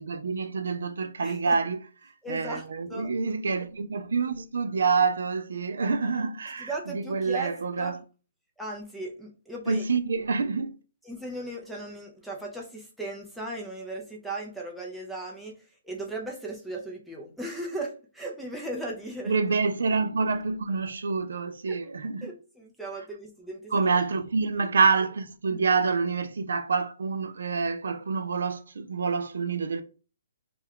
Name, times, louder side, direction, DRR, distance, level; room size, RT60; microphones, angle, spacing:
voice 1, 0.0-8.0 9.7-10.8 19.3-22.3 23.7-29.8, right 4 dB, 75° right, 0.3 m, -27 dB
voice 2, 1.2-1.5 2.2-2.6 2.9-3.1 6.6-7.9 8.6-9.8 11.0-19.3 21.7-21.8 22.2-23.9 25.5-25.6, right 2 dB, ahead, 0.4 m, -37 dB
2.3 x 2.1 x 3.5 m
hypercardioid pair, 160°, 0 cm